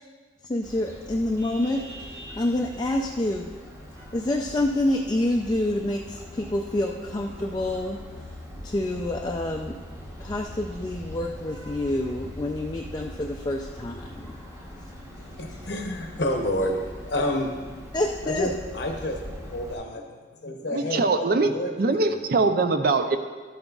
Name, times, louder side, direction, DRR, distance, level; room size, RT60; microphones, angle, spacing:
voice 1, 0.5-3.5 4.1-8.0 8.6-9.8 10.2-14.4 17.9-18.5, left 1 dB, 25° left, 0 dB, 0.4 m, -27 dB
Vehicle horn car horn honking, 0.6-19.7, left 1 dB, 15° right, 1.1 m, -41 dB
voice 2, 15.2-17.5 18.2-19.2 19.5-22.2, left 1 dB, 65° left, 1 dB, 0.8 m, -29 dB
voice 3, 20.7-21.5 21.8-23.2, right 3 dB, 55° right, 8 dB, 0.5 m, -22 dB
12.0 x 8.9 x 2.4 m, 1.5 s
head